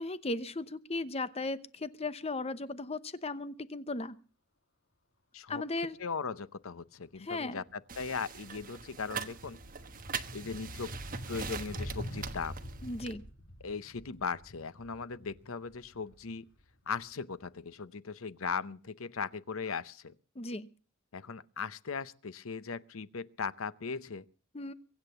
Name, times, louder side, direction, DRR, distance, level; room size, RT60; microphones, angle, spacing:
voice 1, 0.0-4.2 5.5-6.0 7.2-7.6 12.8-13.2 20.4-20.7 24.5-24.7, left 2 dB, 30° left, 0.9 m, -36 dB
voice 2, 6.0-9.6 10.3-10.9 11.3-12.5 13.6-16.5 16.9-20.1 21.1-24.2, left 5 dB, 90° left, 0.8 m, -38 dB
sound 1, 7.7-7.8 8.1-16.9, equal, 65° left, 2.7 m, -45 dB
sound 2, 7.9-13.1, right 6 dB, 45° right, 1.2 m, -42 dB
23.5 x 8.2 x 6.8 m
head